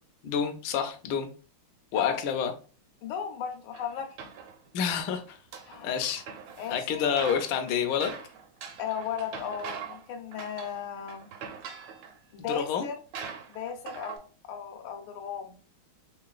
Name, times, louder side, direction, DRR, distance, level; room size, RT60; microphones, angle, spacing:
voice 1, 0.2-1.3 1.9-2.5 4.7-5.4 5.8-6.2 6.7-8.1 12.5-12.9, left 7 dB, 75° left, 5 dB, 1.2 m, -28 dB
voice 2, 3.0-4.1 5.7-5.9 6.6-7.1 8.8-11.3 12.3-13.0 13.5-15.6, left 8 dB, 90° left, 5 dB, 1.6 m, -36 dB
sound 1, 3.7-4.9 5.3-6.8 7.0-10.1 10.3-10.8 11.1-12.2 12.7-12.8 13.1-14.2, right 7 dB, 80° right, 1.5 m, -42 dB
3.9 x 3.1 x 2.3 m, 0.38 s
omnidirectional pair, 2.3 m